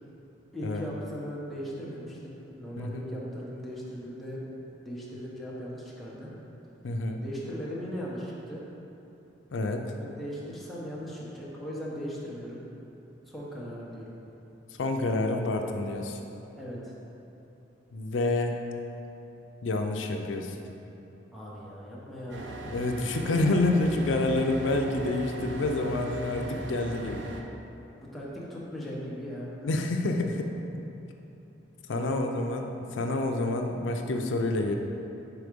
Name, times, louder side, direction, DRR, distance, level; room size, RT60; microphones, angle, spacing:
voice 1, 0.5-4.4 4.8-6.3 7.2-8.6 9.9-12.6 13.3-14.1 16.6-16.9 21.3-22.5 23.2-23.3 28.0-29.7 31.9-32.4, equal, ahead, -7 dB, 1.0 m, -38 dB
voice 2, 6.8-7.2 9.5-9.9 14.8-16.2 17.9-18.6 19.6-20.6 22.6-27.2 29.6-30.5 31.9-34.7, left 2 dB, 80° left, 3 dB, 0.4 m, -28 dB
sound 1, 22.3-27.4, right 1 dB, 70° right, 0.5 m, -39 dB
4.7 x 4.2 x 5.1 m, 2.9 s
head